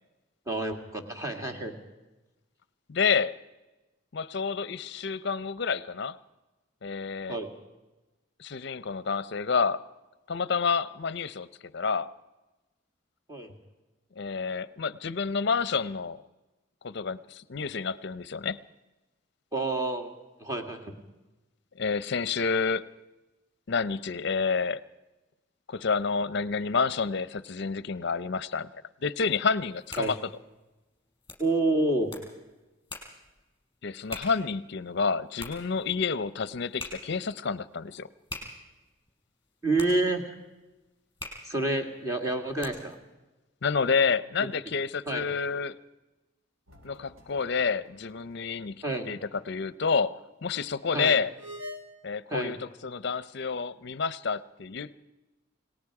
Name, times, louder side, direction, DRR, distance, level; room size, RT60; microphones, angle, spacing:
voice 1, 0.5-1.7 7.3-7.5 13.3-13.5 19.5-20.1 20.4-21.0 30.0-30.1 31.4-32.1 39.6-40.3 41.4-42.9 45.1-45.2 48.8-49.1 50.9-51.2 52.3-52.6, right 2 dB, 15° right, 2 dB, 2.1 m, -28 dB
voice 2, 2.9-3.3 4.1-6.2 6.8-7.4 8.4-9.8 10.3-11.5 11.7-12.1 14.2-16.2 16.8-18.6 21.8-22.8 23.7-24.8 25.7-28.7 29.0-30.2 33.8-38.1 43.6-45.7 46.8-49.2 49.5-50.1 50.4-51.3 52.0-54.9, left 5 dB, 55° left, 16 dB, 0.6 m, -29 dB
sound 1, 29.6-43.0, left 1 dB, 20° left, 5.0 m, -46 dB
sound 2, 46.7-48.4 48.7-48.8 51.3-51.8, left 1 dB, 85° right, 2.8 m, -45 dB
28.5 x 19.0 x 4.8 m, 1.1 s
head